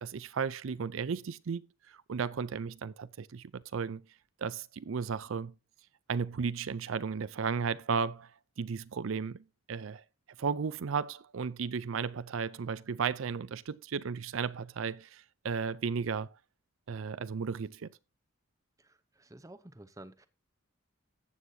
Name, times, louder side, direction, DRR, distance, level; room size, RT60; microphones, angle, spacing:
voice 1, 0.0-4.0 4.4-5.5 6.1-8.3 8.6-9.4 9.7-10.0 10.4-16.3 16.9-17.9, right 6 dB, 75° right, 0.5 m, -34 dB
voice 2, 18.8-20.3, right 1 dB, 15° right, 0.7 m, -51 dB
14.5 x 8.1 x 2.7 m
head